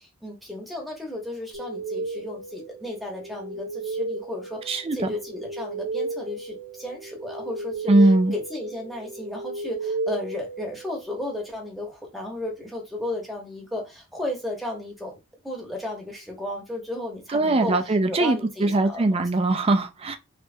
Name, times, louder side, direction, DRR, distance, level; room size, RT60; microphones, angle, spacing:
voice 1, 0.0-15.2 15.4-19.3, left 1 dB, ahead, 1.0 m, -34 dB
sound 1, 1.5-11.2, right 3 dB, 70° right, 0.9 m, -34 dB
voice 2, 7.9-8.3 17.3-20.2, right 2 dB, 25° right, 0.4 m, -21 dB
3.3 x 3.2 x 2.7 m
head